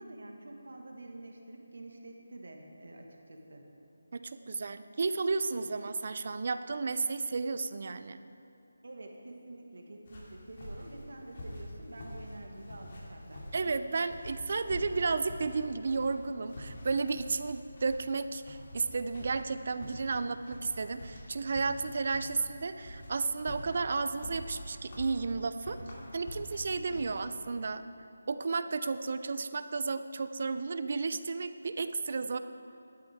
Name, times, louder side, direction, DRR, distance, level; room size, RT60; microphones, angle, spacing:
voice 1, 0.0-3.6 8.8-13.7 26.9-27.1, right 2 dB, 75° right, 2 dB, 1.7 m, -48 dB
voice 2, 4.1-8.2 13.5-25.8 26.1-27.8 28.3-32.4, right 4 dB, 50° right, 11 dB, 0.5 m, -33 dB
sound 1, 10.1-27.2, left 1 dB, 45° left, 2.5 m, -46 dB
13.0 x 12.0 x 3.6 m, 2.6 s
figure-of-eight pair, 170°, 0 cm